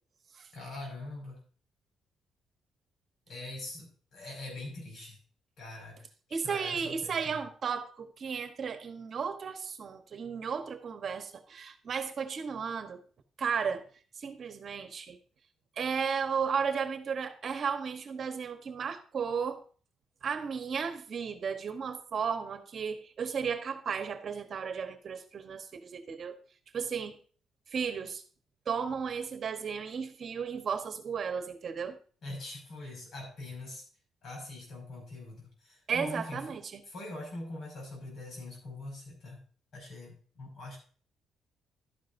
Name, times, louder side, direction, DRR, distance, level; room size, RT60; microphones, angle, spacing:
voice 1, 0.5-1.5 3.3-5.2 5.6-7.4 32.2-33.8 34.2-36.5 36.9-39.4 39.7-40.8, left 2 dB, 60° left, 1 dB, 5.9 m, -43 dB
voice 2, 6.3-13.0 13.4-13.8 14.2-15.2 15.8-19.6 20.2-26.4 26.7-27.2 27.7-28.2 28.7-32.0 35.9-36.8, right 6 dB, 50° right, 8 dB, 1.1 m, -34 dB
11.5 x 9.4 x 2.7 m, 0.42 s
cardioid pair, 90°, 0 cm